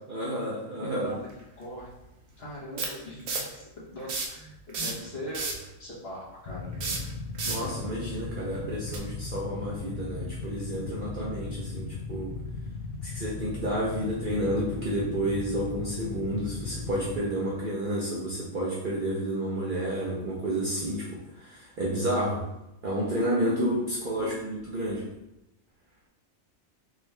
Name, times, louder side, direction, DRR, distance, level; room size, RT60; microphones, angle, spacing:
voice 1, 0.1-1.2 7.4-12.3 13.0-22.4 22.8-25.0, right 1 dB, 50° right, -5 dB, 0.7 m, -30 dB
voice 2, 0.8-1.2 1.6-1.9 2.4-7.0 24.2-24.3, left 1 dB, 50° left, -6 dB, 1.3 m, -40 dB
sound 1, 1.3-1.4 2.8-3.6 4.0-4.4 4.7-5.7 6.7-7.7 8.9-9.0, right 4 dB, 75° right, 1.1 m, -31 dB
Motorcycle / Idling, 6.5-17.2, left 4 dB, 85° left, 1.0 m, -37 dB
3.6 x 3.1 x 3.2 m, 0.90 s
omnidirectional pair, 1.4 m